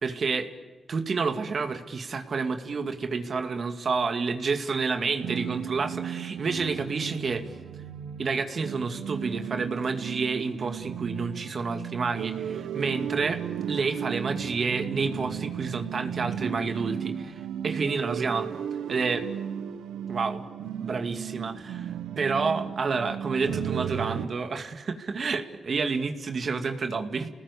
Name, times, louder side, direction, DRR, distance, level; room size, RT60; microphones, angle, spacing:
voice 1, 0.0-0.5 0.9-7.4 8.2-13.4 13.7-17.3 17.6-18.5 18.9-19.2 20.1-21.9 22.2-27.3, right 4 dB, 55° right, 7 dB, 2.2 m, -29 dB
sound 1, 5.2-24.3, right 9 dB, 90° right, 1.0 m, -35 dB
29.0 x 19.5 x 8.3 m, 1.2 s
supercardioid pair, 55°, 0 cm